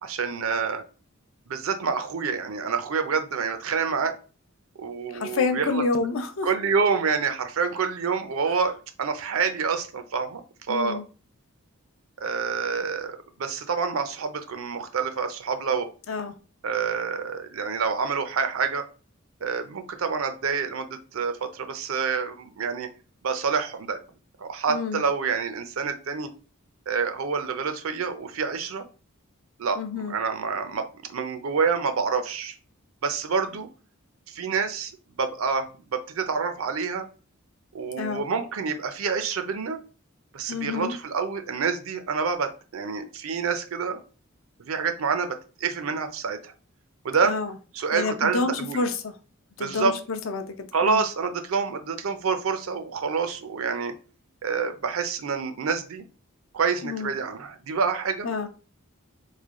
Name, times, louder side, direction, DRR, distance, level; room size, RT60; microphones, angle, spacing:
voice 1, 0.0-0.8 1.5-4.2 4.8-5.8 6.4-10.4 10.7-11.0 12.2-15.9 16.6-18.8 19.4-22.9 23.2-24.0 24.4-26.3 26.9-28.9 29.6-32.6 33.0-33.7 34.3-34.9 35.2-37.1 37.7-39.8 40.3-44.0 44.6-46.5 47.0-47.4 47.7-48.8 49.6-50.0 50.7-53.9 54.4-56.0 56.5-58.5, right 5 dB, 75° right, 0.5 m, -27 dB
voice 2, 5.1-6.5 10.7-11.0 16.1-16.3 24.7-25.0 29.8-30.1 38.0-38.3 40.5-40.9 47.2-47.5 47.9-49.1 49.6-51.0 56.8-57.1 58.2-58.5, left 4 dB, 65° left, 0.5 m, -28 dB
3.2 x 2.2 x 3.5 m
head